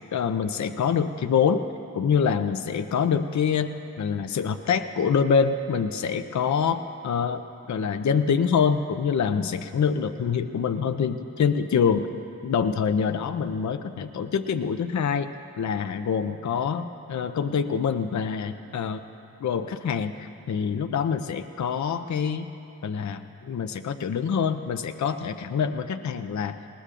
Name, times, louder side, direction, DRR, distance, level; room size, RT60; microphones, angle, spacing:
voice 1, 0.1-1.6 1.9-12.1 12.4-19.0 19.4-22.5 22.8-26.6, left 6 dB, 45° left, 8 dB, 0.6 m, -25 dB
20.0 x 18.5 x 2.5 m, 2.7 s
supercardioid pair, 45°, 41 cm